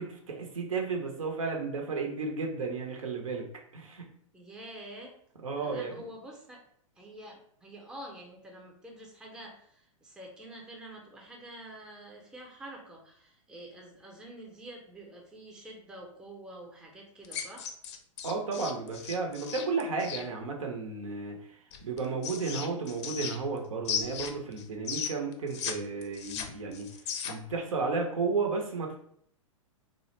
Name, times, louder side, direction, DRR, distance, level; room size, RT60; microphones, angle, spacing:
voice 1, 0.0-3.4 3.7-4.1 5.4-5.9 18.2-21.4 21.8-26.9 27.2-29.1, right 4 dB, 75° right, 2 dB, 0.6 m, -33 dB
voice 2, 4.3-5.2 5.6-6.6 7.0-17.7, right 1 dB, 5° right, 0 dB, 0.5 m, -47 dB
sound 1, 17.2-20.2 21.7-23.6 23.8-25.7 26.0-27.5, left 7 dB, 55° left, 0.4 m, -36 dB
2.4 x 2.0 x 3.0 m, 0.66 s
hypercardioid pair, 105°, 17 cm